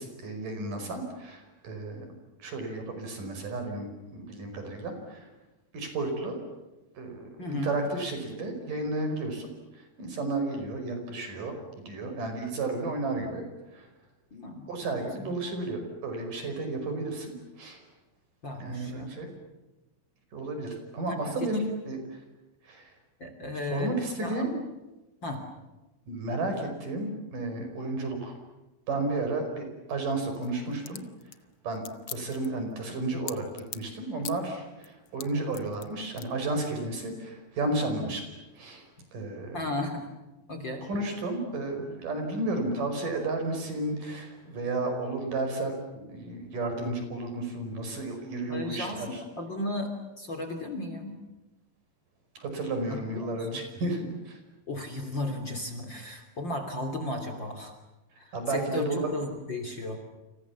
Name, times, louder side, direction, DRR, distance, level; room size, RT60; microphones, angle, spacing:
voice 1, 0.0-2.1 2.4-5.3 5.7-6.4 7.0-13.4 13.7-13.9 14.7-17.8 18.6-19.3 20.3-22.2 22.6-22.9 23.7-24.5 26.1-28.4 28.9-31.0 31.6-38.3 38.5-38.9 39.1-39.7 40.8-49.2 52.4-54.4 58.3-59.1, right 2 dB, 60° right, 5 dB, 6.8 m, -32 dB
voice 2, 7.4-7.7 14.3-14.7 15.0-15.4 18.4-19.1 21.1-21.5 23.2-23.9 24.2-24.5 25.2-25.4 39.5-40.1 40.5-40.8 48.5-51.2 52.9-53.6 54.7-57.7 58.2-58.9 59.1-60.0, left 2 dB, 30° left, 4 dB, 3.3 m, -35 dB
sound 1, 30.1-33.9 34.2-34.5 34.8-35.9 36.2-36.3, left 10 dB, 80° left, 1.2 m, -41 dB
29.5 x 27.5 x 7.3 m, 1.1 s
omnidirectional pair, 4.3 m